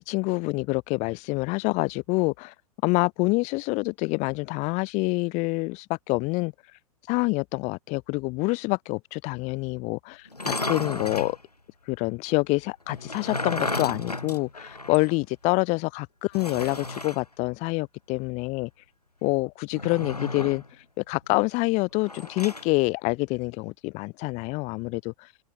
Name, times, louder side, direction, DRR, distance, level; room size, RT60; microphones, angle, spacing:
voice 1, 0.1-2.5 2.8-6.5 7.1-11.4 11.9-18.7 19.2-20.6 21.1-25.1, left 26 dB, 35° left, 2.8 m, -26 dB
sound 1, 10.3-11.4 12.9-15.2 15.4-15.5 16.3-17.2 19.7-20.7 22.1-22.7, left 2 dB, 85° left, 6.9 m, -33 dB
open air
figure-of-eight pair, 100°, 19 cm